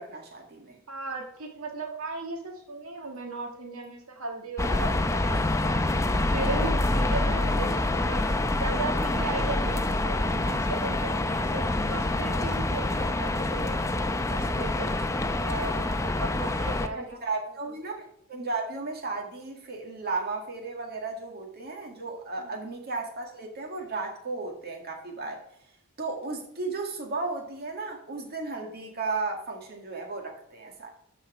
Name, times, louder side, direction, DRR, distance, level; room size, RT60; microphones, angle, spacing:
voice 1, 0.0-0.8 16.9-25.4 26.0-30.9, right 3 dB, 45° right, 1 dB, 2.0 m, -34 dB
voice 2, 0.9-5.8 6.3-8.2 8.6-11.6 11.9-13.8 14.3-14.9 15.4-17.2 22.4-22.5, right 3 dB, 75° right, 1 dB, 1.6 m, -36 dB
sound 1, 4.6-16.9, left 2 dB, 15° left, 0.6 m, -26 dB
13.0 x 4.5 x 4.9 m, 0.78 s
head